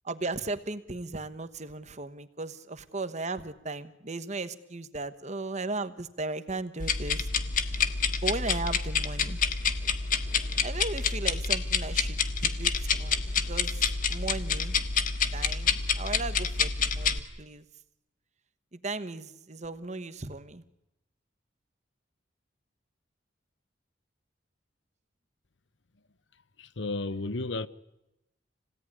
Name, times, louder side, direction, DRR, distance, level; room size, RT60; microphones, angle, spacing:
voice 1, 0.0-7.3 8.2-9.4 10.6-14.7 15.3-17.6 18.7-20.6, right 3 dB, 40° right, 1.2 m, -36 dB
sound 1, 6.8-17.2, left 6 dB, 45° left, 1.5 m, -28 dB
voice 2, 26.6-27.7, left 2 dB, 70° left, 0.9 m, -33 dB
27.0 x 17.5 x 9.9 m
head